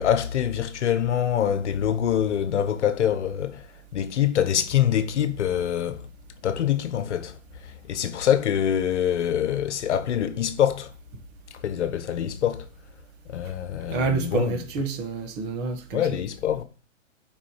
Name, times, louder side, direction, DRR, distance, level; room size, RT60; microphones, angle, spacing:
voice 1, 0.0-6.1 6.4-10.9 11.5-12.7 13.3-14.5 15.9-16.6, left 9 dB, 60° left, 1.3 m, -25 dB
voice 2, 13.9-16.1, right 4 dB, 25° right, 1.5 m, -28 dB
9.9 x 5.4 x 7.2 m
hypercardioid pair, 155°, 40 cm